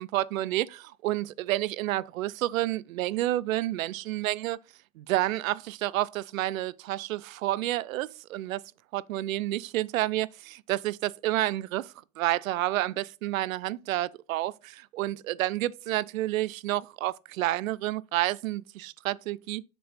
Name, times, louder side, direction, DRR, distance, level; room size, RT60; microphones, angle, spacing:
voice 1, 0.0-4.6 5.0-8.6 8.9-19.6, right 16 dB, 80° right, 0.5 m, -30 dB
6.9 x 3.0 x 5.5 m
supercardioid pair, 155°, 40 cm